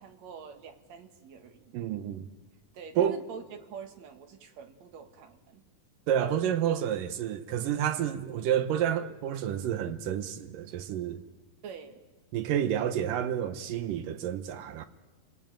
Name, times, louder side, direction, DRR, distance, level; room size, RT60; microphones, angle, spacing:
voice 1, 0.0-1.8 2.7-5.6 11.6-12.0, right 6 dB, 60° right, 2.7 m, -46 dB
voice 2, 1.7-2.3 3.0-3.2 6.1-11.2 12.3-14.9, right 10 dB, 75° right, 2.7 m, -29 dB
29.5 x 20.0 x 9.0 m
omnidirectional pair, 4.0 m